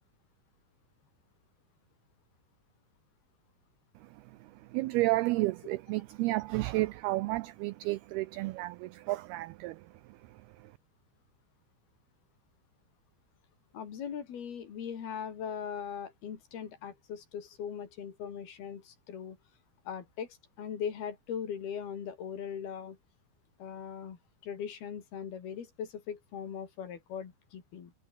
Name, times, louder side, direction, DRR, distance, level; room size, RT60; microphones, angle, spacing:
voice 1, 4.7-9.8, right 19 dB, 85° right, 2.2 m, -31 dB
voice 2, 13.7-19.4 19.9-23.0 23.6-27.9, left 8 dB, 60° left, 4.7 m, -40 dB
omnidirectional pair, 5.2 m